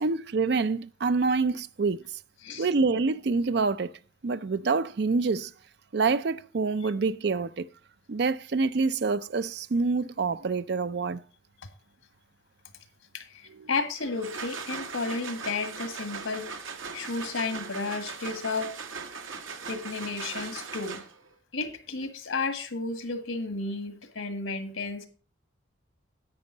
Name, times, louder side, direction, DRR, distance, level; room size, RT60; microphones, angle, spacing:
voice 1, 0.0-2.1 2.6-3.9 4.2-5.5 5.9-7.6 8.1-11.2 13.6-13.7, right 4 dB, 55° right, 0.4 m, -26 dB
voice 2, 13.1-16.5 16.9-18.7 19.7-21.0 21.5-25.1, left 3 dB, 85° left, 1.7 m, -32 dB
sound 1, 14.0-21.3, right 5 dB, 85° right, 1.3 m, -39 dB
10.5 x 8.3 x 3.9 m
head